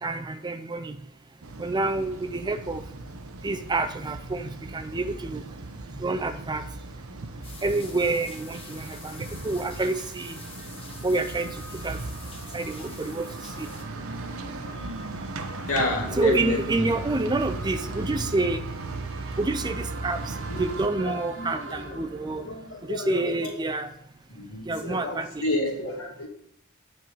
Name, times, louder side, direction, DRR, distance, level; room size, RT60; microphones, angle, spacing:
voice 1, 0.0-1.0 1.6-2.8 3.4-5.4 6.0-6.6 7.6-10.4 11.0-11.5 11.8-12.0 12.5-13.7 16.2-18.6 19.4-22.5 22.9-23.9 24.7-25.3, right 2 dB, 20° right, 9 dB, 0.4 m, -28 dB
sound 1, 1.4-20.9, right 2 dB, 85° right, 0.8 m, -37 dB
sound 2, 6.9-23.6, right 3 dB, 70° right, 1.5 m, -46 dB
sound 3, 7.4-13.8, left 4 dB, 25° left, 1.1 m, -47 dB
voice 2, 15.7-16.9 18.1-18.3 20.5-20.6 21.0-23.5 24.3-26.3, left 1 dB, 80° left, -2 dB, 2.5 m, -31 dB
9.0 x 4.7 x 5.4 m, 0.72 s
head